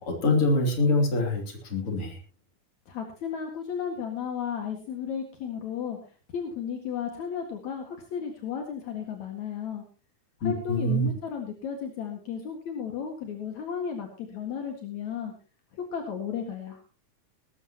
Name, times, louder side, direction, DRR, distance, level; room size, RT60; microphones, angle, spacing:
voice 1, 0.0-1.4 1.7-2.2 10.4-11.1, left 2 dB, 45° left, 3 dB, 3.9 m, -24 dB
voice 2, 2.9-9.8 10.4-15.3 15.7-16.8, left 7 dB, 65° left, 3 dB, 3.1 m, -34 dB
19.0 x 14.5 x 2.9 m, 0.34 s
omnidirectional pair, 3.5 m